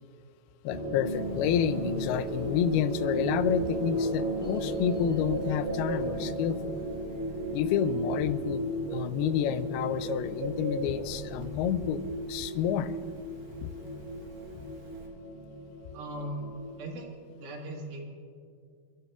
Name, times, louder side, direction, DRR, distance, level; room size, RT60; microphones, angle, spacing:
voice 1, 0.6-6.8 7.5-12.0 12.3-12.9 13.6-13.7, left 9 dB, 85° left, 13 dB, 2.5 m, -29 dB
sound 1, 0.7-17.1, right 1 dB, 55° left, 0.6 m, -35 dB
Bird, 1.1-15.1, right 2 dB, 45° right, 1.9 m, -43 dB
voice 2, 15.9-16.5 16.8-18.0, right 1 dB, 75° right, 0 dB, 3.5 m, -39 dB
28.5 x 12.0 x 2.4 m, 2.2 s
omnidirectional pair, 4.5 m